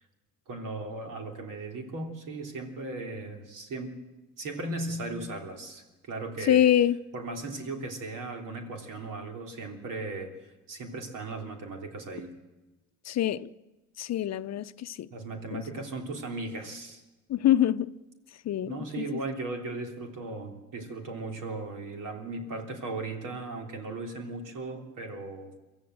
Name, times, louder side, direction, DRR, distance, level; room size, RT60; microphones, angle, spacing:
voice 1, 0.5-3.9 4.4-6.6 7.1-12.4 15.1-17.0 18.6-25.6, right 2 dB, 70° right, 3.3 m, -37 dB
voice 2, 6.5-7.0 13.1-13.5 14.0-15.1 15.5-15.6 17.3-17.9 18.4-19.0, left 11 dB, 55° left, 0.7 m, -25 dB
23.5 x 14.5 x 7.7 m
supercardioid pair, 80°, 33 cm